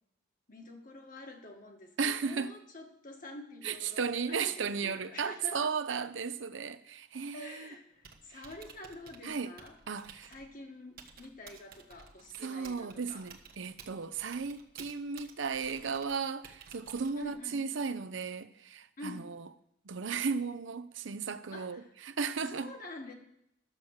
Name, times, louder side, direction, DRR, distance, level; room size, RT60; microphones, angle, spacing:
voice 1, 0.5-5.7 7.3-9.8 10.3-13.3 17.2-17.6 19.0-19.3 21.5-21.9 22.5-23.1, left 2 dB, 45° left, 1.7 m, -47 dB
voice 2, 2.0-2.5 3.6-7.7 8.3-8.4 9.2-9.5 9.9-10.3 12.4-19.4 19.9-22.7, right 5 dB, 80° right, 0.7 m, -35 dB
Typing, 7.9-17.5, right 6 dB, 50° right, 1.3 m, -55 dB
11.5 x 7.1 x 6.6 m
head